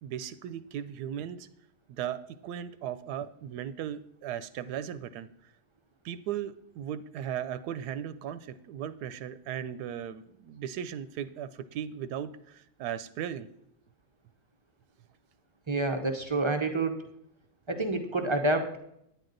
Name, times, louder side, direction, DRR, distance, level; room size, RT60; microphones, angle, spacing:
voice 1, 0.0-1.5 1.9-5.3 6.0-13.5, right 9 dB, 90° right, 13 dB, 1.1 m, -37 dB
voice 2, 15.7-17.0 17.7-18.8, right 2 dB, 35° right, 5 dB, 0.4 m, -28 dB
9.8 x 9.3 x 3.9 m, 0.77 s
omnidirectional pair, 1.7 m